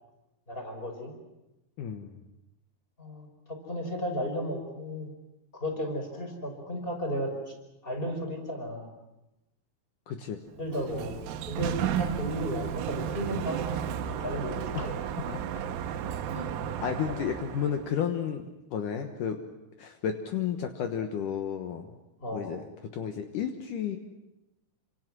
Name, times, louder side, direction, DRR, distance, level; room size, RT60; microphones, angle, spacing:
voice 1, 0.5-1.1 3.0-5.1 5.5-7.5 7.8-8.9 10.6-11.2 11.5-15.0 22.2-22.5, equal, 10° left, 3 dB, 4.7 m, -34 dB
voice 2, 1.8-2.2 10.1-10.4 14.7-14.9 15.3-15.4 16.3-19.4 19.8-21.9 22.3-22.7 22.9-24.0, left 8 dB, 75° left, 5 dB, 1.9 m, -32 dB
Sliding door, 10.5-17.9, right 9 dB, 85° right, 3.7 m, -33 dB
28.0 x 27.0 x 6.2 m, 0.97 s
omnidirectional pair, 5.5 m